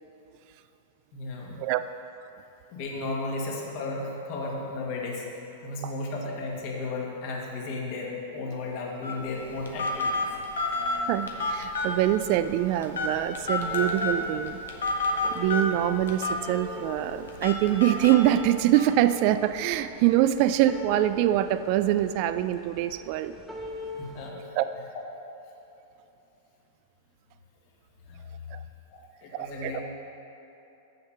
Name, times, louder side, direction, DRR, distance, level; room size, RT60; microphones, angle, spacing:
voice 1, 1.1-1.6 2.7-10.7 24.0-24.5 24.9-25.0 28.1-28.2 28.9-29.8, left 2 dB, 50° left, -2 dB, 1.8 m, -34 dB
Telephone, 9.0-18.8, left 2 dB, 75° left, 1.0 m, -31 dB
voice 2, 10.8-14.6 15.3-23.4 24.6-24.7 28.5-28.6 29.3-29.8, right 13 dB, 50° right, 12 dB, 0.3 m, -24 dB
sound 1, 11.9-24.3, left 1 dB, 5° right, 0.9 m, -42 dB
7.2 x 6.6 x 5.6 m, 2.9 s
hypercardioid pair, 100°, 0 cm